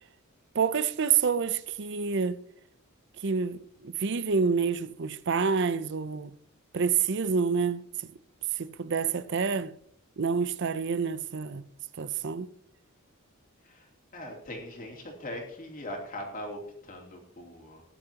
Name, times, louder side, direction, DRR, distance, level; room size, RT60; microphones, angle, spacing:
voice 1, 0.5-2.4 3.2-6.4 6.7-7.8 8.6-9.8 10.2-11.7 12.0-12.5, right 5 dB, 55° right, 0.6 m, -28 dB
voice 2, 14.1-17.8, left 1 dB, 40° left, 3.1 m, -40 dB
18.5 x 10.5 x 2.9 m
head